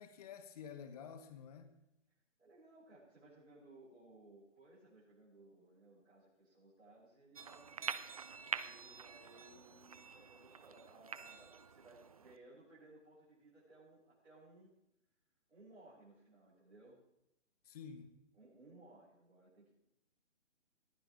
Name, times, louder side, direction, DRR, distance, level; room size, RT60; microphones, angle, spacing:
voice 1, 0.0-1.7 17.7-18.1, left 7 dB, 30° left, 9 dB, 1.5 m, -50 dB
voice 2, 2.4-7.9 8.6-14.7 15.5-17.0 18.3-19.7, right 2 dB, 85° right, -9 dB, 7.7 m, -61 dB
sound 1, 7.4-12.4, right 6 dB, 30° right, 0.5 m, -46 dB
20.0 x 15.0 x 3.7 m, 0.83 s
figure-of-eight pair, 140°, 37 cm